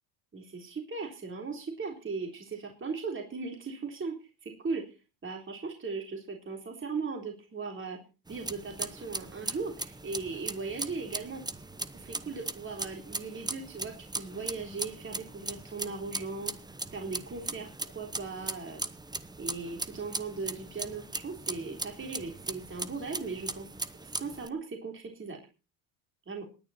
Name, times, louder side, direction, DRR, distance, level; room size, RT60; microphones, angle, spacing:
voice 1, 0.3-4.2 4.4-4.9 5.2-8.0 8.3-11.4 11.9-16.5 16.9-18.8 19.4-23.7 24.0-25.4 26.3-26.4, right 4 dB, 25° right, 2 dB, 3.6 m, -38 dB
sound 1, 8.3-24.5, right 2 dB, 10° right, 0.9 m, -39 dB
18.5 x 10.0 x 4.3 m, 0.32 s
supercardioid pair, 95°, 45 cm